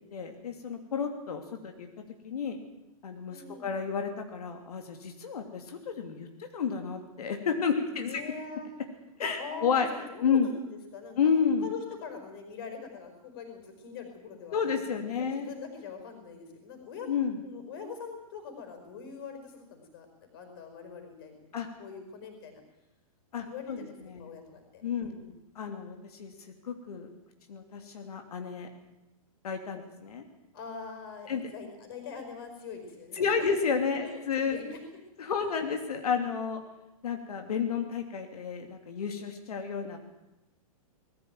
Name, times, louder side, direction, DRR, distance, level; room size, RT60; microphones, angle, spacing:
voice 1, 0.1-1.9 2.2-2.6 3.0-6.3 6.5-8.2 9.2-9.9 10.2-10.5 11.2-11.7 14.5-15.5 17.1-17.4 21.5-21.7 23.3-24.3 24.8-25.1 25.5-26.3 26.6-27.1 27.5-28.7 29.4-30.2 31.3-31.5 33.2-34.6 35.2-36.6 37.0-40.0, left 6 dB, 90° left, 4 dB, 3.0 m, -31 dB
voice 2, 3.3-3.7 7.9-8.7 9.4-11.2 11.6-17.1 17.4-22.6 23.5-23.9 24.2-25.4 30.5-33.5 34.0-34.8, left 5 dB, 40° left, 6 dB, 5.3 m, -43 dB
20.5 x 15.5 x 9.2 m, 0.93 s
hypercardioid pair, 175°, 19 cm